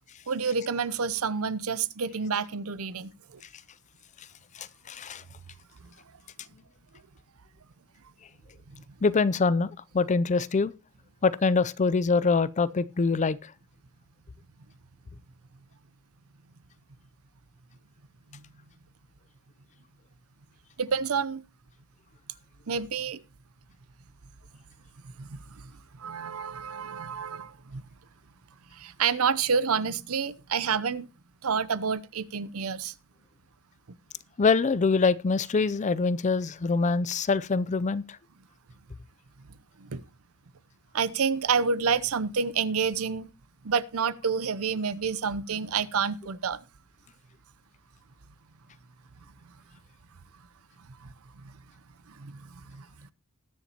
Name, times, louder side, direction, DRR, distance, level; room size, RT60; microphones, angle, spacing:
voice 1, 0.3-3.4 18.3-18.4 20.8-21.4 22.7-23.2 25.2-25.7 26.0-27.8 28.7-31.1 31.4-32.9 39.8-40.0 40.9-43.3 43.6-46.6 51.0-51.1 51.4-51.5 52.1-52.9, right 6 dB, 70° right, 0.7 m, -29 dB
voice 2, 4.6-5.2 9.0-10.7 11.2-13.5 34.4-38.0, left 4 dB, 35° left, 0.5 m, -24 dB
20.0 x 7.1 x 2.9 m
head